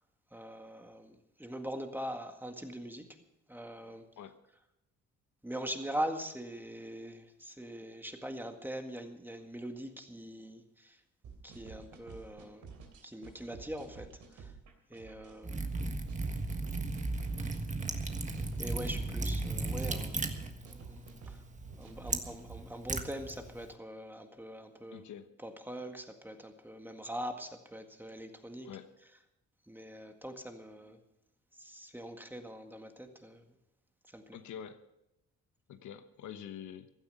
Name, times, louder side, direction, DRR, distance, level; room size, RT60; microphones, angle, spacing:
voice 1, 0.3-3.1 3.5-4.0 5.4-11.0 11.4-12.7 13.0-14.5 14.9-15.7 18.6-20.4 20.6-21.4 21.8-25.1 25.4-28.7 29.7-31.0 31.6-33.4 34.1-34.4, right 1 dB, 5° right, 5 dB, 1.9 m, -42 dB
sound 1, 11.2-22.6, right 5 dB, 75° right, 3.2 m, -51 dB
Liquid, 15.4-23.7, right 3 dB, 25° right, 1.5 m, -36 dB
voice 2, 24.9-25.3 28.6-28.9 34.3-34.8 35.7-36.9, left 9 dB, 75° left, 9 dB, 1.1 m, -46 dB
16.0 x 12.0 x 5.6 m, 0.87 s
cardioid pair, 90°, 30 cm